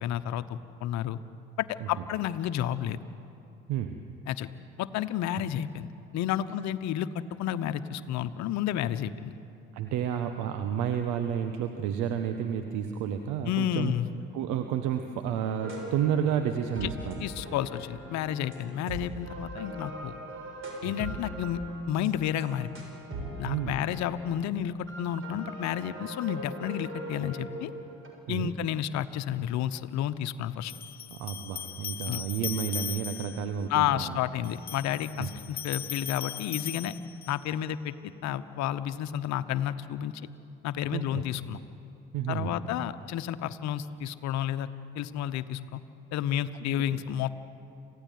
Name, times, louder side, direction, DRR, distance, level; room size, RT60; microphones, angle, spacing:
voice 1, 0.0-1.2 1.6-3.0 4.3-4.5 4.8-7.1 7.4-9.3 13.5-14.1 16.8-16.9 17.2-20.2 20.8-21.6 21.9-22.8 23.4-27.7 28.3-30.7 32.1-32.2 33.7-36.9 37.3-40.1 40.6-41.6 42.3-44.7 44.9-45.8 46.1-47.5, left 11 dB, 65° left, 12 dB, 1.1 m, -31 dB
voice 2, 9.7-13.9 14.3-17.3 20.8-21.0 23.4-23.8 28.3-28.5 31.1-34.2 35.2-35.3 40.9-41.3 42.1-42.5 46.9-47.0, right 9 dB, 70° right, 7 dB, 1.3 m, -31 dB
sound 1, 15.6-24.3 24.9-28.1, right 1 dB, 40° right, 6.9 m, -41 dB
sound 2, 29.4-29.5 30.7-33.5 34.4-37.5, left 9 dB, 30° left, 0.5 m, -38 dB
27.5 x 16.0 x 9.3 m, 2.7 s
hypercardioid pair, 60°, 30 cm